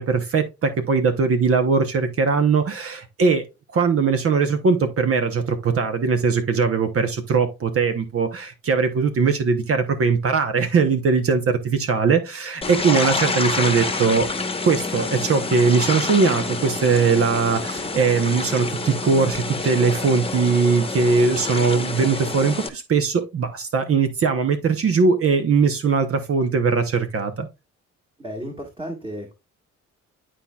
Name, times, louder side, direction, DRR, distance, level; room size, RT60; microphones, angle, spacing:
voice 1, 0.0-3.4 3.7-14.3 14.6-27.5, right 5 dB, 50° right, 1.0 m, -20 dB
sound 1, 12.6-22.7, left 3 dB, 20° left, 1.1 m, -28 dB
voice 2, 28.2-29.3, equal, 15° right, 1.7 m, -33 dB
11.5 x 4.3 x 2.3 m
cardioid pair, 90°, 30 cm